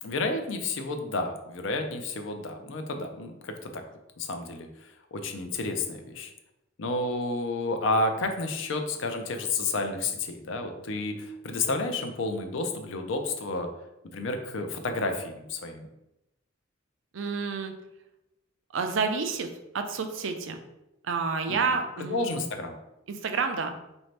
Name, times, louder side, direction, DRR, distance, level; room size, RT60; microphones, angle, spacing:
voice 1, 0.0-3.8 4.2-4.7 5.1-6.3 6.8-13.7 14.1-15.9 21.5-21.6 22.1-22.8, left 2 dB, 75° left, 6 dB, 0.5 m, -30 dB
voice 2, 17.1-17.7 18.7-19.5 19.7-20.6 21.0-22.5 23.1-23.7, right 5 dB, 70° right, 6 dB, 0.4 m, -29 dB
4.2 x 2.6 x 3.2 m, 0.90 s
head